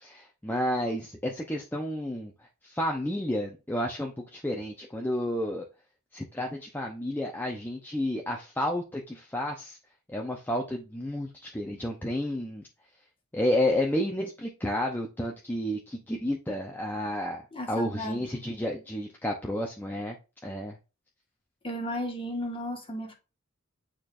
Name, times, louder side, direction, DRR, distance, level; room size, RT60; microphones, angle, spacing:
voice 1, 0.0-2.3 2.6-5.7 6.1-9.8 10.1-12.6 13.3-17.4 17.7-20.2 20.4-20.8, left 1 dB, 10° left, 0.7 m, -31 dB
voice 2, 17.5-18.2 21.6-23.1, equal, 25° left, 1.5 m, -34 dB
8.8 x 4.4 x 2.5 m
head